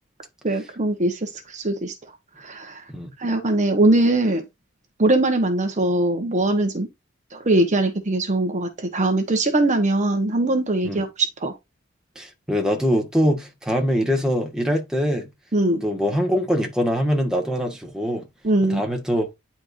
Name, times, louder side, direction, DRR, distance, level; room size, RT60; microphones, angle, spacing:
voice 1, 0.4-1.9 2.4-2.8 3.2-4.4 5.0-6.9 7.3-11.5 15.5-15.8 18.4-18.8, right 2 dB, 35° right, 1.2 m, -21 dB
voice 2, 12.1-15.3 15.8-18.2 18.6-19.3, equal, 5° right, 1.5 m, -23 dB
10.0 x 4.4 x 2.6 m
head